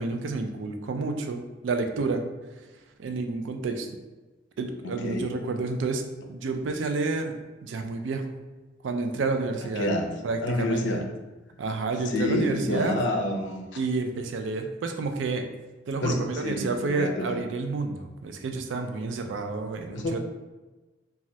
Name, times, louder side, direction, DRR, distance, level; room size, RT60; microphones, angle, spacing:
voice 1, 0.0-2.2 3.0-3.9 4.6-6.0 6.3-7.3 7.6-8.3 8.8-9.9 10.2-11.0 11.6-13.0 13.8-15.5 15.9-20.2, right 3 dB, 75° right, 6 dB, 0.3 m, -30 dB
voice 2, 10.4-11.0 12.1-13.6 16.0-16.2 16.4-17.4 19.9-20.2, left 1 dB, 70° left, 4 dB, 0.4 m, -28 dB
2.7 x 2.3 x 3.1 m, 1.2 s
head